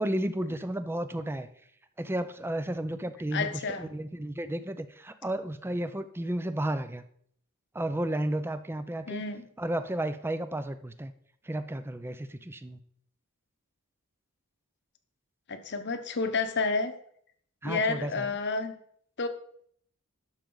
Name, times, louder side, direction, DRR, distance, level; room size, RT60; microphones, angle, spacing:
voice 1, 0.0-1.5 2.0-7.0 7.7-9.2 9.6-11.1 11.4-12.8 17.6-18.3, right 1 dB, 10° right, 11 dB, 0.5 m, -32 dB
voice 2, 3.3-3.9 9.1-9.4 15.5-16.9 17.6-18.7 19.2-19.3, left 4 dB, 55° left, 8 dB, 1.0 m, -30 dB
11.5 x 6.3 x 3.9 m, 0.65 s
head